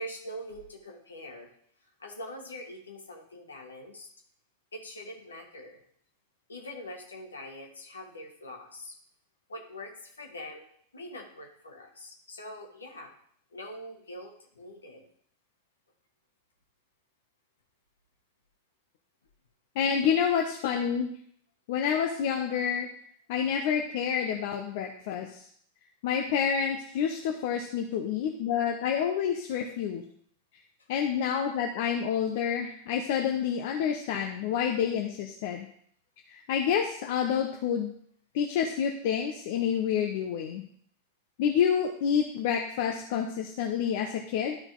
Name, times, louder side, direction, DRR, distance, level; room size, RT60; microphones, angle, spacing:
voice 1, 0.0-1.5 2.0-4.1 4.7-5.8 6.5-9.0 9.5-10.7 10.9-13.1 13.5-15.0 30.8-30.9, equal, 75° left, 1 dB, 1.8 m, -43 dB
voice 2, 19.8-21.1 21.7-22.9 23.3-25.4 26.0-30.0 30.9-35.7 36.3-37.9 38.3-40.6 41.4-44.6, left 8 dB, 50° left, 3 dB, 0.8 m, -28 dB
12.0 x 4.4 x 3.9 m, 0.63 s
figure-of-eight pair, 90°, 0 cm